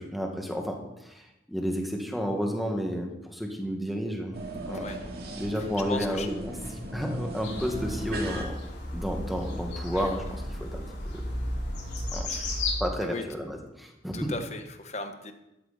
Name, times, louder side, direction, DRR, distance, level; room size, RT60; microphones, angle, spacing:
voice 1, 0.0-4.8 5.3-8.5 8.9-10.8 11.1-11.2 12.1-12.3 12.8-14.3, equal, ahead, 2 dB, 2.0 m, -32 dB
sound 1, 4.3-8.4, right 1 dB, 60° right, 2.6 m, -37 dB
voice 2, 5.9-6.3 9.9-10.1 12.3-12.6 13.0-13.3 14.1-15.3, left 2 dB, 40° left, 7 dB, 1.3 m, -37 dB
sound 2, 7.4-12.8, left 1 dB, 85° left, 4.3 m, -34 dB
13.5 x 12.5 x 4.3 m, 0.92 s
head